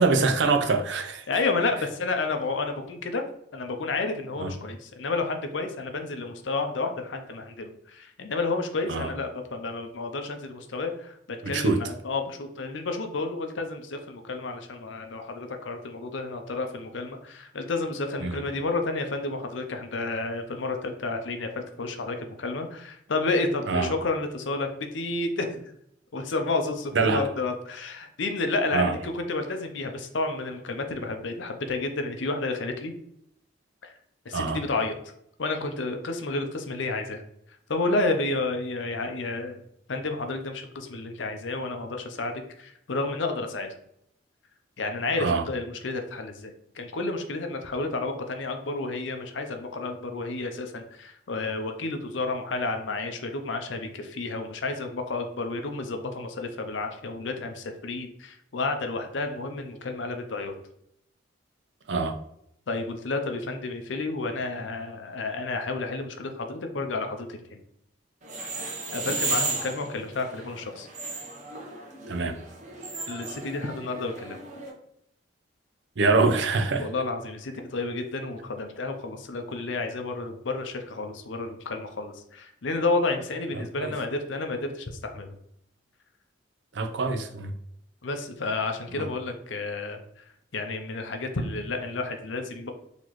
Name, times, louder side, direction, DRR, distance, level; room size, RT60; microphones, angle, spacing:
voice 1, 0.0-1.2 4.4-4.5 8.9-9.1 11.4-11.8 18.2-18.4 23.7-23.9 26.9-27.2 28.7-28.9 34.3-34.6 45.2-45.4 61.9-62.2 72.1-72.4 76.0-76.9 83.6-83.9 86.7-87.5 89.0-89.1, right 3 dB, 65° right, 0.5 m, -24 dB
voice 2, 1.3-3.2 3.5-25.6 26.1-32.9 33.8-33.9 34.2-34.9 35.4-37.2 37.7-39.6 39.9-43.7 44.8-60.6 62.7-67.6 68.9-70.9 73.1-74.4 76.8-85.4 88.0-90.2 90.5-92.7, left 3 dB, 75° left, 0.6 m, -31 dB
sound 1, 68.2-74.7, right 3 dB, 40° right, 0.9 m, -34 dB
4.0 x 3.0 x 3.0 m
head